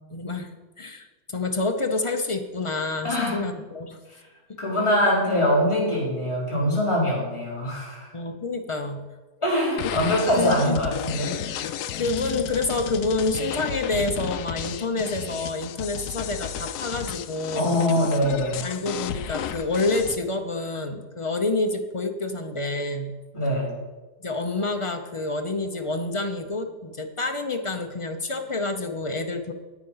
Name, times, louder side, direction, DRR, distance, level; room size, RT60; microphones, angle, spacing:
voice 1, 0.1-0.5 0.8-4.0 8.1-9.0 10.4-10.8 11.5-17.7 18.6-23.2 24.2-29.5, left 2 dB, 45° left, 6 dB, 0.4 m, -28 dB
voice 2, 3.0-3.4 4.1-4.2 4.6-8.1 9.4-11.4 17.5-18.6 23.3-23.7, equal, 20° left, -6 dB, 3.7 m, -23 dB
sound 1, 9.8-20.2, left 10 dB, 85° left, 1.2 m, -33 dB
9.4 x 8.9 x 5.6 m, 1.2 s
omnidirectional pair, 1.6 m